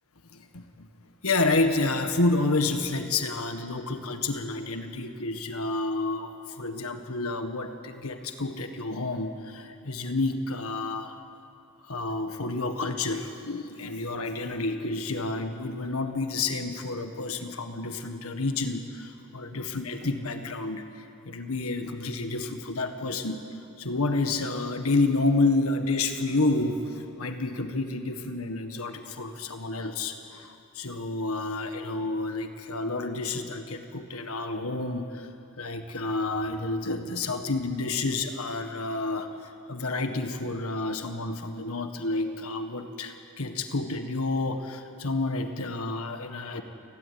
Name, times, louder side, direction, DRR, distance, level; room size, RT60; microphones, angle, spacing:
voice 1, 0.3-0.9 1.2-11.2 11.8-35.3 35.6-46.6, left 2 dB, 75° left, 6 dB, 1.7 m, -29 dB
29.0 x 17.5 x 9.8 m, 2.6 s
head